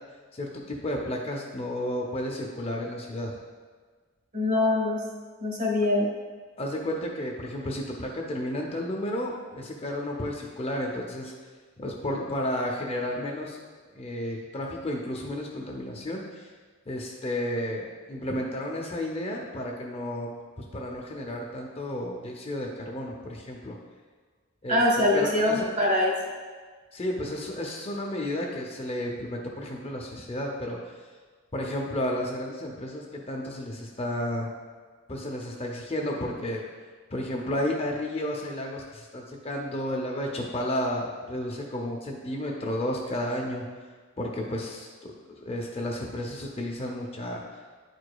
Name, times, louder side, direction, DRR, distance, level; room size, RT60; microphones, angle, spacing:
voice 1, 0.3-3.3 6.6-11.3 11.8-13.6 14.0-16.5 16.9-20.3 20.7-23.8 24.6-25.7 26.9-31.1 31.5-34.5 35.1-36.6 37.1-43.6 44.2-45.1 45.4-47.4, left 1 dB, 25° left, -1 dB, 0.5 m, -32 dB
voice 2, 4.3-5.0 5.4-6.1 24.7-26.1, left 1 dB, 35° right, -2 dB, 1.4 m, -23 dB
9.8 x 4.8 x 2.3 m, 1.5 s
head